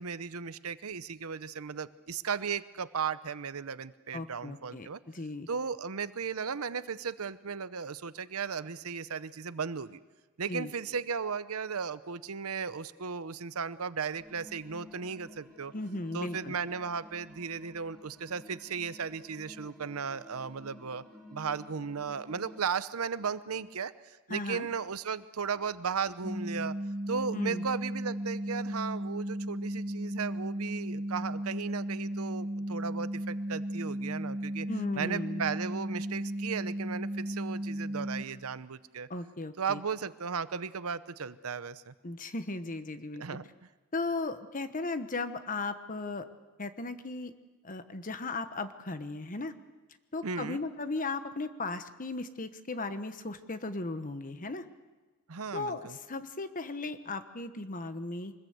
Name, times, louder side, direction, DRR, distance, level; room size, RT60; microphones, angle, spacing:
voice 1, 0.0-5.0 5.5-10.0 10.4-15.7 16.1-21.0 21.3-26.8 27.1-34.7 34.9-39.1 39.6-41.9 43.2-43.5 50.2-50.6 55.3-56.0, right 6 dB, 80° right, 14 dB, 0.8 m, -36 dB
voice 2, 4.1-5.5 10.5-10.7 15.7-16.5 24.3-24.7 27.3-27.6 34.7-35.4 39.1-39.8 42.0-43.2 43.9-46.3 46.6-47.3 47.6-49.5 50.1-54.7 55.5-58.3, left 3 dB, 40° left, 10 dB, 1.2 m, -36 dB
sound 1, 14.1-22.6, left 1 dB, 5° left, 6.7 m, -52 dB
sound 2, 26.2-38.2, right 1 dB, 15° right, 1.5 m, -35 dB
24.5 x 21.0 x 8.0 m, 1.3 s
head